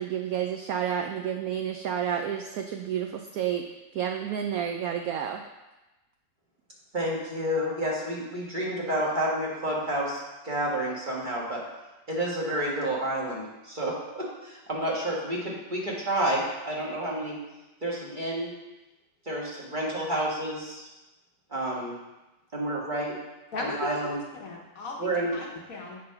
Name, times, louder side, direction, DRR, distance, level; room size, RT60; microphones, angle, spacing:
voice 1, 0.0-3.7 3.9-5.4, right 9 dB, 80° right, 4 dB, 0.8 m, -30 dB
voice 2, 6.9-10.2 10.4-11.6 12.1-17.4 17.8-18.5 19.2-20.8 21.5-21.9 22.5-23.1 23.6-24.2 25.0-25.4, right 1 dB, 25° right, -4 dB, 1.5 m, -30 dB
voice 3, 23.5-26.0, left 2 dB, 55° left, -1 dB, 1.2 m, -37 dB
7.6 x 4.2 x 5.6 m, 1.0 s
omnidirectional pair, 2.0 m